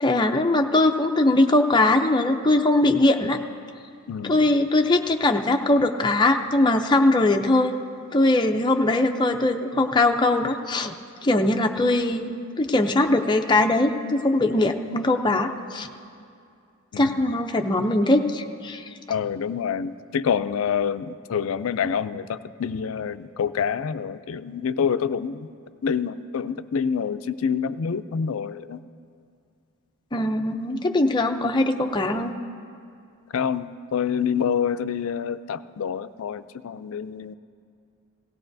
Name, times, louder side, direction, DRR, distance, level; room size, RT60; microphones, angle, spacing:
voice 1, 0.0-3.4 4.2-7.8 8.1-10.9 11.2-15.9 17.0-18.9 30.1-32.3, left 2 dB, 20° left, 4 dB, 0.5 m, -21 dB
voice 2, 4.1-4.5 16.9-17.4 19.1-25.5 25.8-28.8 30.7-30.9 33.3-37.3, left 7 dB, 70° left, 13 dB, 0.4 m, -27 dB
17.5 x 16.5 x 2.7 m, 2.4 s
head